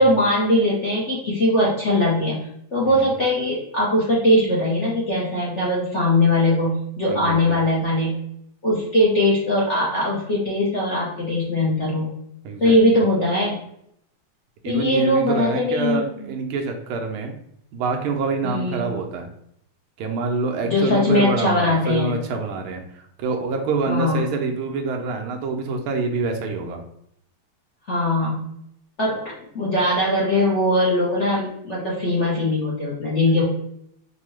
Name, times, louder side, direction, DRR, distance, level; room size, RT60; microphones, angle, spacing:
voice 1, 0.0-2.4 2.7-8.1 8.6-12.2 12.6-13.5 14.7-16.0 18.4-18.9 20.6-22.1 23.9-24.3 27.9-28.5 29.0-33.4, left 1 dB, 55° left, -7 dB, 0.8 m, -20 dB
voice 2, 7.1-7.6 12.4-12.8 14.6-17.3 17.7-19.3 20.0-26.8, right 4 dB, 80° right, 3 dB, 1.5 m, -26 dB
5.5 x 2.2 x 3.1 m, 0.74 s
omnidirectional pair, 2.4 m